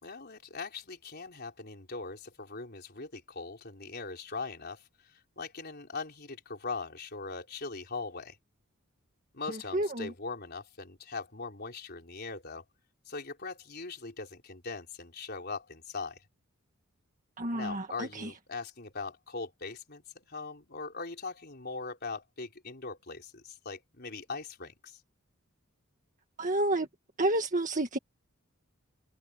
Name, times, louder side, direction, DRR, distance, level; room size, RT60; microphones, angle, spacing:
voice 1, 0.0-4.9 5.4-8.4 9.3-12.6 13.1-16.2 17.5-25.0, left 4 dB, 50° left, 4.0 m, -40 dB
voice 2, 9.5-10.1 17.4-18.3 26.4-26.9 27.2-28.0, right 1 dB, 35° right, 1.7 m, -30 dB
head